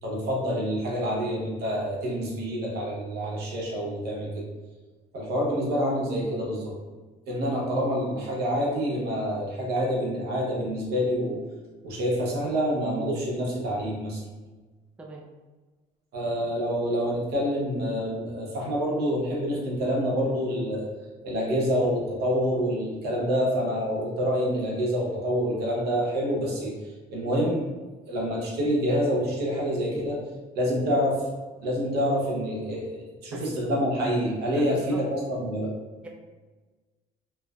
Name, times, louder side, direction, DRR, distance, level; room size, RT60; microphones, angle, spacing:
voice 1, 0.0-4.4 5.1-6.7 7.3-11.4 11.8-14.2 16.1-20.9 21.2-26.7 27.1-27.7 28.1-30.2 30.5-31.2 31.6-35.7, equal, 75° right, -3 dB, 0.8 m, -27 dB
voice 2, 34.5-35.0 36.0-36.1, right 2 dB, 5° right, -1 dB, 0.3 m, -41 dB
3.1 x 2.0 x 2.3 m, 1.3 s
cardioid pair, 110°, 17 cm